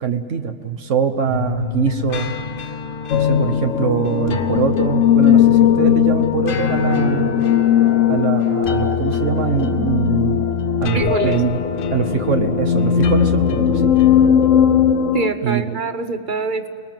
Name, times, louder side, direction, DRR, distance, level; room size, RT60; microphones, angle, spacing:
voice 1, 0.0-2.3 3.1-7.3 8.1-10.5 10.8-11.6 11.9-13.9 15.4-15.8, right 6 dB, 80° right, 6 dB, 1.4 m, -22 dB
sound 1, 1.3-14.9, left 7 dB, 50° left, 0.9 m, -29 dB
sound 2, 3.1-15.3, left 9 dB, 80° left, 1.1 m, -18 dB
voice 2, 10.9-11.4 15.1-16.7, right 4 dB, 45° right, 10 dB, 1.1 m, -24 dB
29.5 x 20.5 x 7.5 m, 2.4 s
omnidirectional pair, 1.3 m